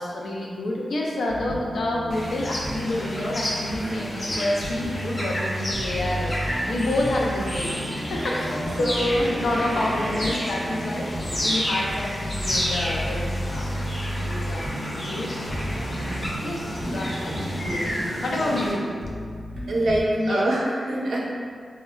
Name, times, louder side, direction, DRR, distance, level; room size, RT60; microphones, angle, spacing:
voice 1, 0.0-6.4 6.7-13.7 14.0-14.6 15.1-15.4 15.8-18.9 20.2-20.5, left 1 dB, 85° left, -2 dB, 0.4 m, -28 dB
sound 1, 1.3-20.0, equal, 25° right, 0.6 m, -33 dB
sound 2, 2.1-18.7, equal, 35° left, 0.6 m, -31 dB
voice 2, 19.7-21.2, right 1 dB, 75° right, -4 dB, 0.5 m, -24 dB
3.6 x 2.1 x 2.3 m, 2.1 s
wide cardioid pair, 170°, 0 cm